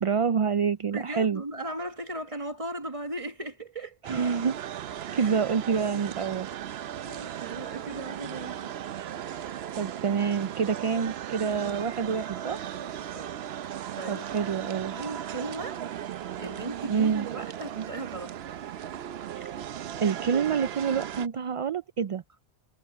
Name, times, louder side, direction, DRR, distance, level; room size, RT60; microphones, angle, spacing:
voice 1, 0.0-1.4 4.0-4.6 5.1-6.5 9.7-12.7 14.1-15.0 16.9-17.3 19.4-19.6 20.0-22.2, right 6 dB, 55° right, 0.4 m, -27 dB
voice 2, 0.9-4.0 5.2-5.3 7.1-8.7 12.5-13.3 13.6-14.2 14.9-15.8 16.4-18.3, right 2 dB, 35° right, 1.5 m, -37 dB
sound 1, 4.0-21.3, right 10 dB, 80° right, 0.9 m, -37 dB
omnidirectional pair, 1.0 m